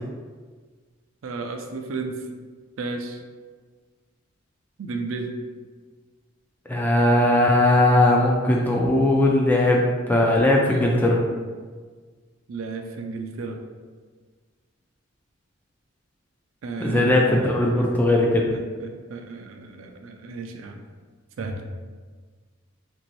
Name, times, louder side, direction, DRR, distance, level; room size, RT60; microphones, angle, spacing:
voice 1, 1.2-2.2 2.8-3.2 4.8-5.3 12.5-13.6 16.6-17.5 17.8-17.9 18.5-20.8 21.4-21.6, right 4 dB, 75° right, 4 dB, 0.4 m, -33 dB
voice 2, 6.7-11.2 16.8-18.4, left 1 dB, 10° left, -2 dB, 0.3 m, -19 dB
3.0 x 2.6 x 3.0 m, 1.5 s
head